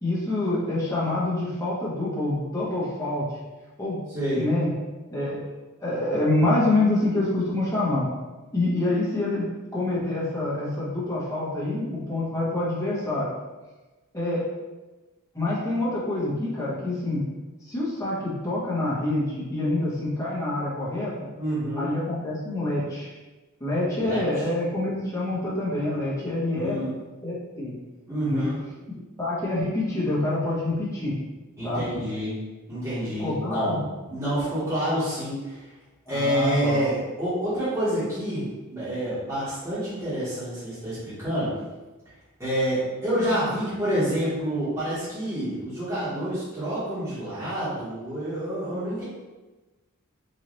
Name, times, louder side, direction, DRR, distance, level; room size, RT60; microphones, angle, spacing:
voice 1, 0.0-3.4 3.8-4.0 4.4-4.7 5.1-5.4 5.8-8.1 8.5-13.3 14.1-14.4 15.3-17.2 17.6-21.3 21.8-23.1 23.6-26.7 27.2-27.7 28.3-28.5 29.2-31.2 31.6-31.8 33.2-33.8 36.1-36.9, left 2 dB, 15° left, -9 dB, 1.3 m, -26 dB
voice 2, 4.1-4.5 21.4-21.9 24.0-24.5 26.5-26.9 28.1-28.6 31.6-32.4 32.7-35.7 36.1-41.5 42.4-49.0, right 1 dB, 15° right, -13 dB, 1.5 m, -28 dB
4.0 x 2.8 x 3.1 m, 1.2 s
head